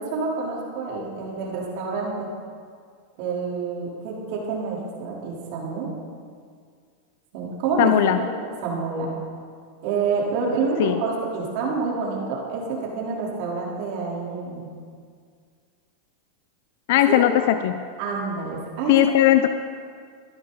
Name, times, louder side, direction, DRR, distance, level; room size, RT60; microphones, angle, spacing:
voice 1, 0.0-2.3 3.2-5.9 7.3-8.3 8.6-9.1 9.8-14.7 17.1-17.2 18.0-19.0, right 4 dB, 60° right, -3 dB, 3.7 m, -28 dB
voice 2, 7.8-8.2 10.8-11.0 16.9-17.8 18.9-19.5, left 13 dB, 65° left, 9 dB, 0.5 m, -18 dB
15.5 x 11.5 x 4.0 m, 2.1 s
supercardioid pair, 135°, 0 cm